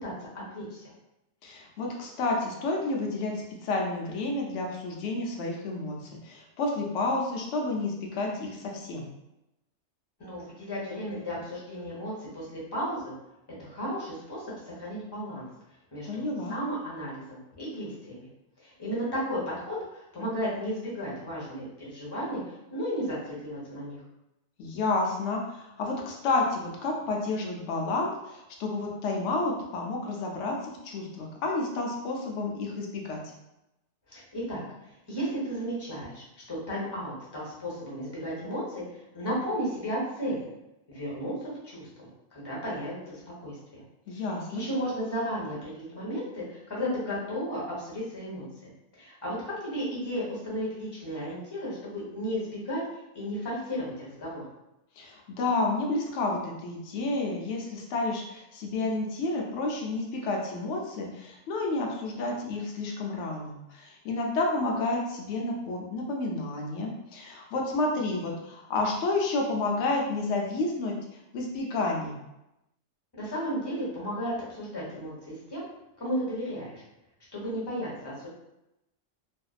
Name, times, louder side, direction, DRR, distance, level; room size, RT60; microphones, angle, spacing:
voice 1, 0.5-0.9 10.2-13.1 13.6-15.5 15.9-16.2 16.5-18.3 18.6-24.0 34.1-34.6 35.1-38.8 39.1-40.5 40.9-43.8 44.1-54.4 73.2-75.7 76.0-76.8 77.3-78.3, equal, 25° left, -6 dB, 0.7 m, -34 dB
voice 2, 1.4-9.1 16.1-16.5 24.6-33.2 44.1-44.6 55.0-71.0 71.3-72.2, left 2 dB, 75° left, 0 dB, 0.9 m, -30 dB
2.5 x 2.1 x 2.4 m, 0.90 s
omnidirectional pair, 1.3 m